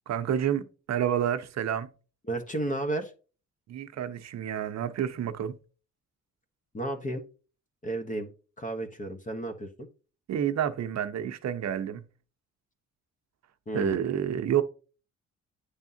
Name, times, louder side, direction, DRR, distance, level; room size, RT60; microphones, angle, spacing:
voice 1, 0.1-1.9 3.7-5.6 10.3-12.0 13.7-14.6, right 9 dB, 60° right, 0.8 m, -29 dB
voice 2, 2.3-3.1 6.7-7.2 7.8-8.3 8.6-9.9 13.7-14.0, right 1 dB, 25° left, 1.1 m, -32 dB
9.7 x 3.5 x 2.8 m
cardioid pair, 90°, 30 cm